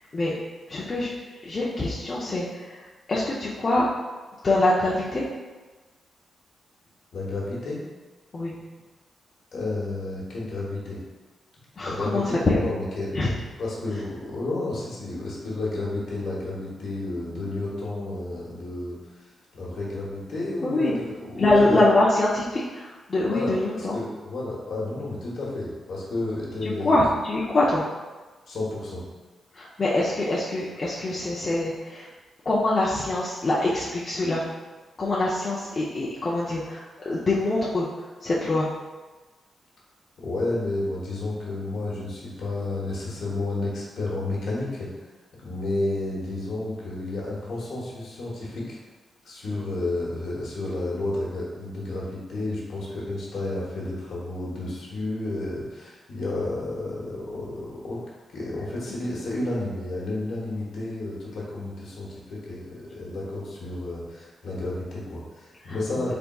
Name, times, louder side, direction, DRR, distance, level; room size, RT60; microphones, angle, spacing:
voice 1, 0.7-1.1 1.4-2.8 3.1-3.9 4.4-5.2 8.3-8.6 11.8-12.6 13.1-13.3 20.6-20.9 21.4-24.0 26.6-27.8 29.5-32.1 32.5-34.4 35.0-37.9 38.2-38.7 58.9-59.1 65.6-66.1, left 2 dB, 30° left, -7 dB, 0.5 m, -24 dB
voice 2, 7.1-7.8 9.5-11.0 11.8-13.2 13.6-19.0 19.5-21.9 23.3-26.9 28.5-29.0 40.2-44.9 45.4-48.8 49.2-58.0 58.3-66.1, left 2 dB, 65° left, -5 dB, 1.0 m, -31 dB
4.0 x 3.4 x 2.3 m, 1.3 s
wide cardioid pair, 130°, 0 cm